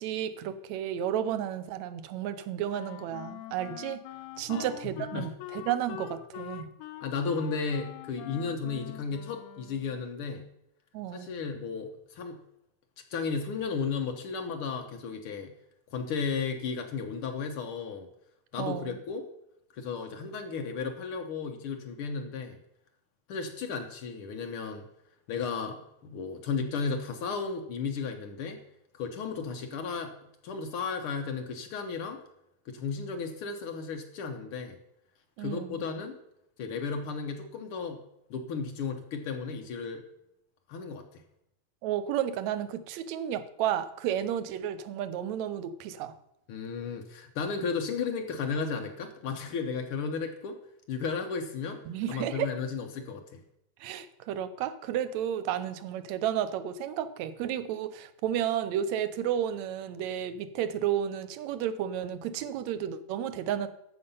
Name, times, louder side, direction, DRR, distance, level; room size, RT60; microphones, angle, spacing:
voice 1, 0.0-4.0 4.4-6.7 10.9-11.3 18.6-19.0 35.4-35.8 41.8-46.2 51.9-52.5 53.8-63.7, right 10 dB, 75° right, 12 dB, 1.9 m, -32 dB
Wind instrument woodwind instrument, 2.7-10.1, left 13 dB, 85° left, 2.0 m, -44 dB
voice 2, 5.0-5.3 7.0-10.5 11.1-12.4 13.1-15.5 15.9-18.1 18.5-19.3 19.7-22.6 23.3-24.9 25.3-28.6 28.9-30.2 30.4-32.2 32.7-34.8 35.4-36.2 36.6-38.0 38.3-40.0 40.7-41.2 46.5-50.6 50.9-51.8 52.1-53.4, left 5 dB, 70° left, 5 dB, 1.4 m, -34 dB
11.0 x 7.0 x 5.4 m, 0.80 s
omnidirectional pair, 3.3 m